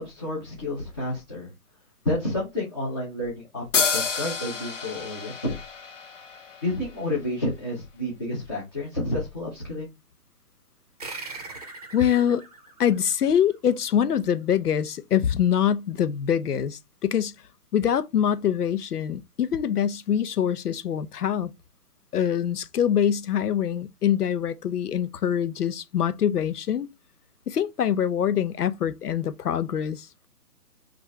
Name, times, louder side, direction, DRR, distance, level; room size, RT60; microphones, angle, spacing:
voice 1, 0.0-1.5 2.0-5.5 6.6-9.9, left 1 dB, 15° left, 0.9 m, -30 dB
sound 1, 3.7-7.3, left 5 dB, 55° left, 1.1 m, -29 dB
sound 2, 11.0-14.0, right 3 dB, 25° right, 0.7 m, -41 dB
voice 2, 11.9-12.4 12.8-17.3 17.7-21.5 22.1-26.9 27.5-30.3, left 9 dB, 85° left, 0.8 m, -24 dB
6.0 x 2.6 x 3.2 m
hypercardioid pair, 175°, 45 cm